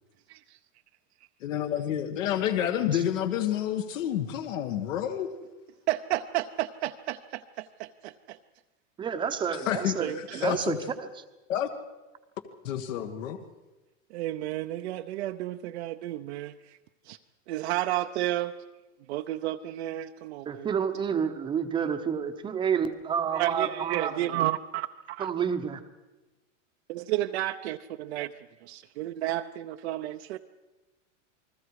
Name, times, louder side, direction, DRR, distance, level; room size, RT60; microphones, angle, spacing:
voice 1, 1.4-5.3 9.5-10.8 11.5-11.7 12.6-13.4, left 10 dB, 75° left, 5 dB, 1.6 m, -29 dB
voice 2, 5.9-8.4 10.0-10.5 14.1-16.8 17.1-17.2 17.5-18.5 19.1-20.7 23.2-25.3 26.9-28.3 28.6-30.4, right 14 dB, 55° right, 6 dB, 0.7 m, -32 dB
voice 3, 9.0-10.1 10.3-10.8 20.5-24.4 25.2-25.8, right 7 dB, 10° right, 8 dB, 0.8 m, -29 dB
28.5 x 20.5 x 4.8 m, 1.1 s
supercardioid pair, 165°, 39 cm